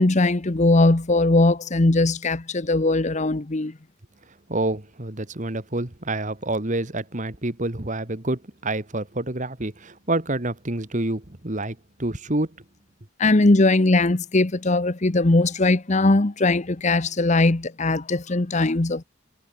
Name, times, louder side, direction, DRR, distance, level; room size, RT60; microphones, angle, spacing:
voice 1, 0.0-3.7 13.2-19.0, left 2 dB, 35° left, 0.9 m, -20 dB
voice 2, 4.5-12.6, right 2 dB, 40° right, 1.9 m, -28 dB
head